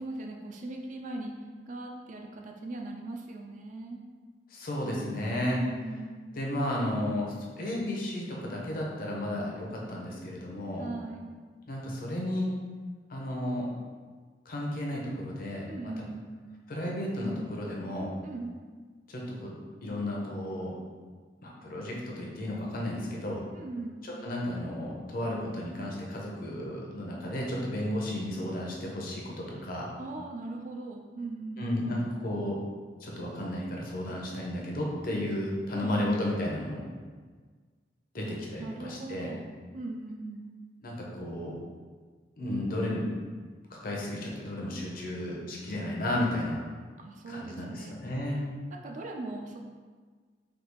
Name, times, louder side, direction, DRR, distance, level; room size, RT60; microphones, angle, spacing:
voice 1, 0.0-1.3 1.7-4.0 5.4-6.2 10.8-11.3 15.7-16.3 18.2-18.6 23.5-24.1 30.0-31.7 35.7-36.1 38.3-40.5 47.0-48.0 48.8-49.6, right 2 dB, 45° right, 1 dB, 0.3 m, -39 dB
voice 2, 4.5-5.6 6.3-10.9 11.7-12.5 13.1-13.7 14.5-15.9 16.7-18.1 19.1-19.5 19.8-20.7 21.4-23.4 24.0-29.9 31.6-32.6 33.0-36.8 38.1-39.3 40.8-41.5 42.4-43.0 43.7-46.6 47.3-48.4, left 1 dB, 55° left, -2 dB, 0.6 m, -33 dB
3.4 x 2.3 x 3.0 m, 1.5 s
head